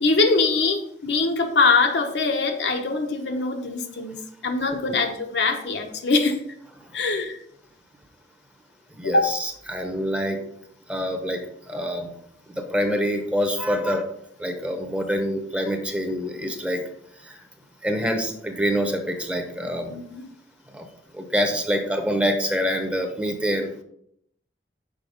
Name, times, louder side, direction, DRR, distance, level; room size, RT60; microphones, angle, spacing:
voice 1, 0.0-6.4 6.9-7.4 9.0-9.3 19.9-20.3, left 3 dB, 70° left, 4 dB, 1.0 m, -23 dB
voice 2, 8.9-10.4 10.9-11.4 11.7-12.1 12.6-14.0 14.4-16.8 17.2-17.4 17.8-20.0 20.7-20.9 21.1-23.7, equal, 5° right, 5 dB, 0.9 m, -26 dB
6.3 x 4.8 x 5.2 m, 0.71 s
head